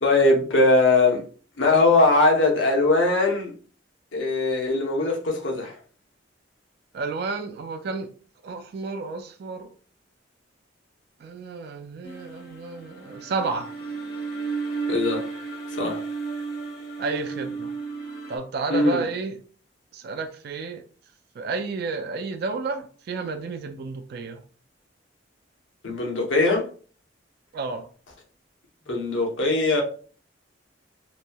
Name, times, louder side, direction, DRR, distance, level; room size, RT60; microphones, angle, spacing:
voice 1, 0.0-1.2 1.6-3.5 4.1-5.7 14.9-15.2 15.8-16.0 18.7-19.1 25.8-26.7 28.9-29.8, left 2 dB, 90° left, 0.8 m, -20 dB
voice 2, 6.9-8.1 8.4-9.7 11.2-13.7 17.0-17.7 18.3-19.4 19.9-20.8 21.4-24.4 27.5-27.9, right 4 dB, 55° right, 0.3 m, -31 dB
sound 1, 12.0-18.4, right 4 dB, 60° left, 0.7 m, -33 dB
3.0 x 2.6 x 2.2 m
head